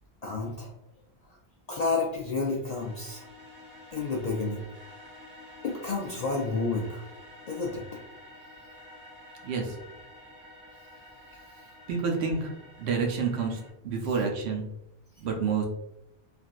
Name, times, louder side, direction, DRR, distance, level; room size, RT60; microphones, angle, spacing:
voice 1, 0.2-0.7 1.7-3.2 3.9-4.6 5.6-7.0 7.5-7.8, left 3 dB, 55° left, -2 dB, 0.4 m, -30 dB
sound 1, 1.9-13.7, left 1 dB, 20° right, 0.9 m, -50 dB
voice 2, 9.4-9.8 11.9-12.5 12.8-14.7 15.2-15.7, right 5 dB, 80° right, 2 dB, 0.9 m, -29 dB
3.3 x 2.5 x 2.4 m, 0.84 s
omnidirectional pair, 1.1 m